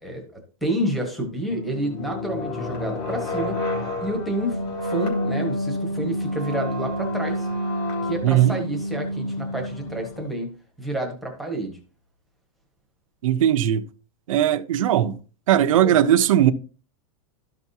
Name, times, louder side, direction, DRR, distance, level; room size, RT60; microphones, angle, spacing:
voice 1, 0.0-3.6 4.0-7.5 8.0-10.5 10.8-11.8 15.8-15.9, right 1 dB, ahead, 1.4 m, -29 dB
sound 1, 1.5-10.3, left 1 dB, 30° left, 2.9 m, -29 dB
voice 2, 8.2-8.6 13.2-13.8 14.3-15.2 15.5-16.5, right 11 dB, 65° right, 0.8 m, -18 dB
13.0 x 6.0 x 2.8 m
supercardioid pair, 170°, 18 cm